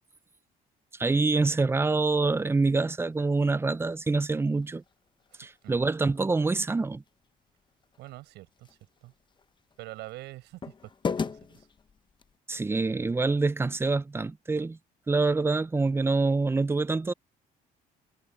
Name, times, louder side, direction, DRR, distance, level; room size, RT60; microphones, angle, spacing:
voice 1, 1.0-4.8 5.4-7.0 12.5-14.8 15.1-17.1, right 3 dB, 15° right, 0.5 m, -26 dB
sound 1, 2.1-12.4, left 5 dB, 25° left, 0.9 m, -42 dB
voice 2, 5.3-5.9 8.0-9.1 9.8-11.7, right 18 dB, 90° right, 7.6 m, -46 dB
cardioid pair, 110°, 17 cm